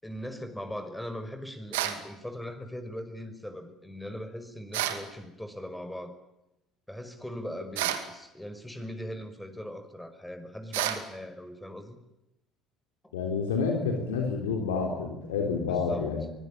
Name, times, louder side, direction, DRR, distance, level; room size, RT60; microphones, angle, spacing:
voice 1, 0.0-6.1 6.9-12.0 13.0-13.1 15.7-16.1, equal, 5° left, 8 dB, 5.7 m, -40 dB
sound 1, 1.7-2.0 4.7-5.0 7.7-8.1 10.7-11.0, right 12 dB, 70° right, 2.4 m, -29 dB
voice 2, 13.1-16.3, left 5 dB, 75° left, 2 dB, 3.7 m, -29 dB
25.0 x 20.5 x 9.0 m, 0.92 s
figure-of-eight pair, 55°, 0 cm